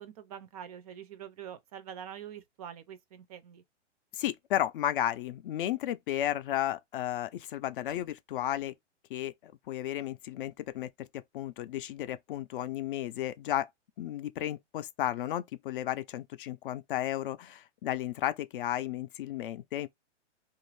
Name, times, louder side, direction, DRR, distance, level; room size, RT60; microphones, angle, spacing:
voice 1, 0.0-3.6, right 9 dB, 35° right, 0.4 m, -45 dB
voice 2, 4.1-8.7 9.1-13.7 14.0-19.9, left 12 dB, 50° left, 0.4 m, -33 dB
2.7 x 2.5 x 3.1 m
hypercardioid pair, 135°, 36 cm